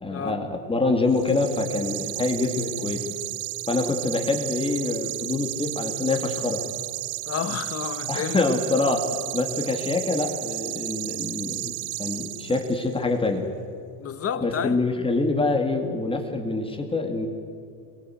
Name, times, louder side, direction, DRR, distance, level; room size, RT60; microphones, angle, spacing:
voice 1, 0.0-3.1 3.7-6.6 8.1-9.0 9.3-11.7 12.0-13.5 14.4-17.3, left 3 dB, 10° left, 3 dB, 2.4 m, -25 dB
sound 1, 1.1-12.9, right 21 dB, 75° right, 0.8 m, -33 dB
voice 2, 7.3-8.4 14.0-14.8, left 8 dB, 30° left, 10 dB, 1.6 m, -30 dB
25.0 x 22.5 x 8.0 m, 2.5 s
cardioid pair, 155°, 48 cm